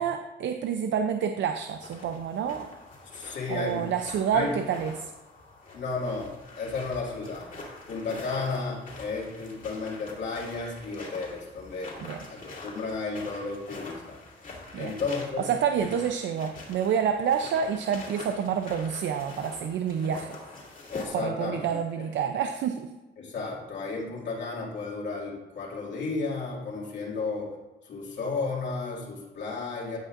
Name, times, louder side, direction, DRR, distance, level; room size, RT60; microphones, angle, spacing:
voice 1, 0.0-2.7 3.5-5.1 12.0-12.2 14.7-15.0 15.4-20.4 21.1-22.9, right 7 dB, 65° right, 7 dB, 0.5 m, -28 dB
sound 1, 1.5-21.1, left 2 dB, 45° left, 2.4 m, -45 dB
voice 2, 3.1-3.9 4.3-4.6 5.7-6.3 6.6-7.5 7.9-11.9 12.2-14.2 14.8-15.4 20.9-21.8 23.2-27.5 27.8-30.0, left 4 dB, 65° left, -5 dB, 2.3 m, -33 dB
15.5 x 5.2 x 2.5 m, 1.1 s
cardioid pair, 90°, 20 cm